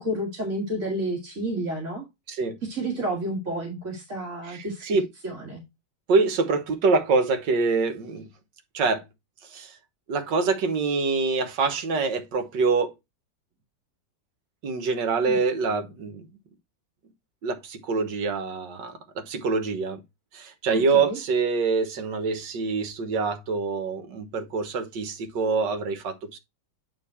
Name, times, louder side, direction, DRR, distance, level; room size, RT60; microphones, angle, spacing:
voice 1, 0.0-2.1 2.6-5.6 15.3-15.4 20.7-21.2, right 1 dB, 45° right, 2.1 m, -31 dB
voice 2, 4.4-5.1 6.1-8.3 8.7-9.0 9.4-9.8 10.1-12.9 14.6-16.3 17.4-20.0 20.3-26.4, right 4 dB, 80° right, 1.8 m, -25 dB
8.9 x 3.6 x 4.2 m
omnidirectional pair, 1.9 m